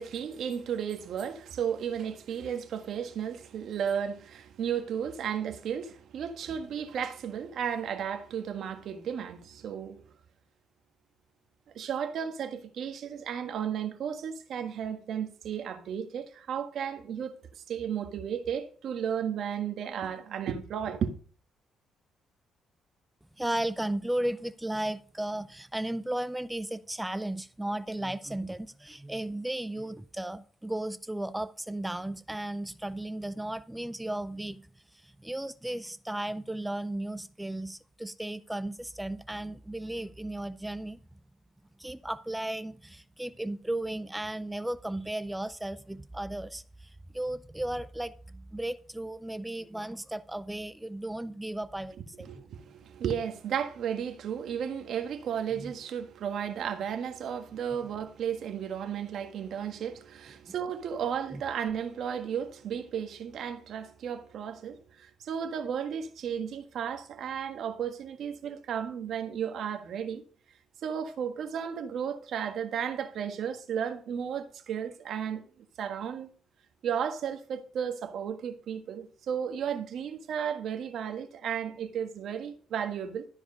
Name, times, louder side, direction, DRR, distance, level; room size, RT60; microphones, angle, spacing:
voice 1, 0.0-10.0 11.7-21.1 52.2-70.2 70.8-75.4 75.8-76.3 76.8-83.3, right 8 dB, 70° right, 1.5 m, -34 dB
voice 2, 23.4-34.7 35.0-41.0 41.8-52.3 55.6-55.7 60.5-60.6 61.3-61.4, right 1 dB, 10° right, 0.5 m, -35 dB
13.0 x 4.9 x 5.2 m
cardioid pair, 90°, 0 cm